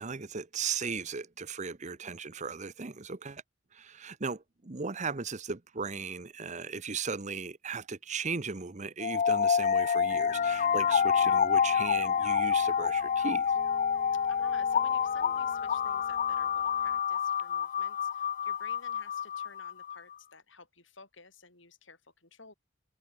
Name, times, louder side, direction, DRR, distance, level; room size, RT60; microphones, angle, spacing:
voice 1, 0.0-3.4 3.7-13.5, right 5 dB, 35° right, 0.9 m, -37 dB
sound 1, 9.0-20.0, left 7 dB, 40° left, 0.4 m, -28 dB
Piano, 10.1-17.0, equal, 10° right, 7.8 m, -55 dB
voice 2, 14.3-22.5, left 4 dB, 65° left, 7.7 m, -53 dB
head